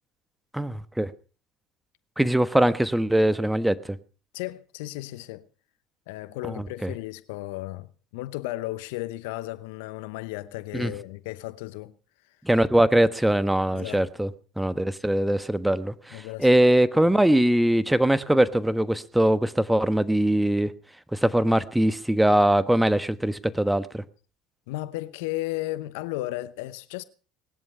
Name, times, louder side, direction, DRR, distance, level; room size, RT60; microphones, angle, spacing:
voice 1, 0.5-1.1 2.2-4.0 6.5-6.9 10.7-10.9 12.4-14.3 14.6-20.7 21.1-24.0, right 1 dB, 5° right, 1.2 m, -22 dB
voice 2, 4.3-5.4 6.1-7.9 8.1-11.9 13.7-14.1 16.1-16.5 17.0-17.1 24.7-27.0, left 17 dB, 75° left, 0.8 m, -34 dB
19.5 x 11.0 x 5.6 m
hypercardioid pair, 70°, 0 cm